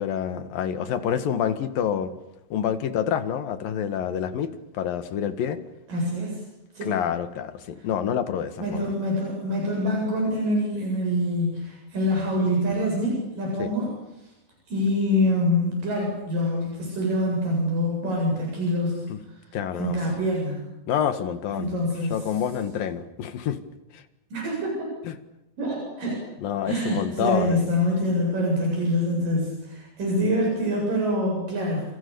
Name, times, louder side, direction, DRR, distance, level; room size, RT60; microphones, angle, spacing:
voice 1, 0.0-2.1 2.5-4.5 4.7-5.6 6.8-8.6 13.6-13.7 19.1-19.2 19.5-20.0 20.9-21.7 22.1-23.6 23.9-24.0 25.1-25.2 26.4-27.6, left 9 dB, 85° left, 11 dB, 3.6 m, -27 dB
voice 2, 5.9-6.4 6.7-6.9 8.6-13.9 14.7-19.0 19.8-20.6 21.6-22.2 24.3-24.9 25.6-26.2 26.7-31.8, left 1 dB, 75° right, -1 dB, 9.5 m, -25 dB
30.0 x 28.0 x 7.0 m, 0.91 s
omnidirectional pair, 3.9 m